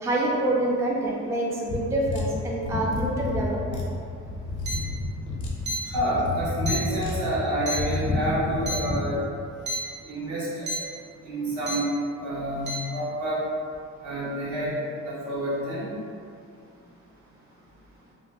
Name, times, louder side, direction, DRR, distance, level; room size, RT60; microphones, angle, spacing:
voice 1, 0.0-3.8, right 1 dB, 10° right, -3 dB, 0.3 m, -26 dB
sound 1, 1.7-9.0, left 3 dB, 75° left, 0.7 m, -30 dB
sound 2, 4.6-4.7 5.6-5.7 6.7-6.8 7.7-7.8 8.7-8.8 9.7-9.8 10.7-10.8 11.7-11.8 12.7-12.8, equal, 35° right, 0.8 m, -29 dB
voice 2, 5.9-9.2 10.0-10.7 11.2-11.8 12.2-13.4 14.0-14.8 15.0-15.9, equal, 75° right, -8 dB, 1.1 m, -28 dB
2.9 x 2.1 x 2.8 m, 2.3 s
cardioid pair, 90°, 30 cm